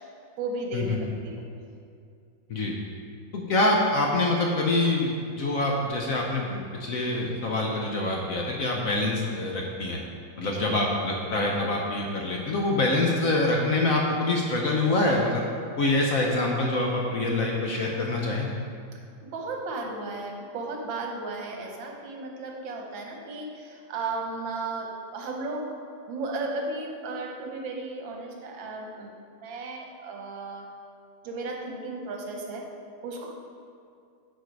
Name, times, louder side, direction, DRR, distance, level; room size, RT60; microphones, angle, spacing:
voice 1, 0.4-1.4 10.4-10.7 19.2-25.6 26.1-29.1 29.4-30.7 31.2-32.6 33.0-33.3, right 3 dB, 85° right, 1 dB, 1.7 m, -34 dB
voice 2, 3.3-10.0 10.4-15.5 15.8-18.5, left 2 dB, 60° left, -1 dB, 1.0 m, -25 dB
9.0 x 4.8 x 4.6 m, 2.4 s
omnidirectional pair, 2.0 m